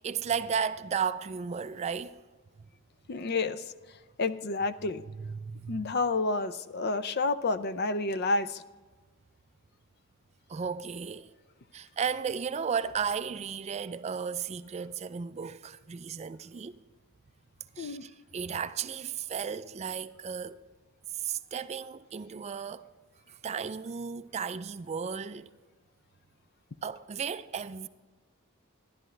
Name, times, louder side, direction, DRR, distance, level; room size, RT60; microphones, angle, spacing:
voice 1, 0.0-2.2 5.2-5.9 10.5-11.3 11.7-16.8 17.7-20.6 21.1-22.9 23.3-25.5 26.8-27.9, right 6 dB, 30° right, 0.3 m, -34 dB
voice 2, 3.1-3.6 4.2-5.0 5.7-8.6 17.8-18.1, left 3 dB, 50° left, 0.5 m, -29 dB
14.0 x 11.0 x 3.3 m
head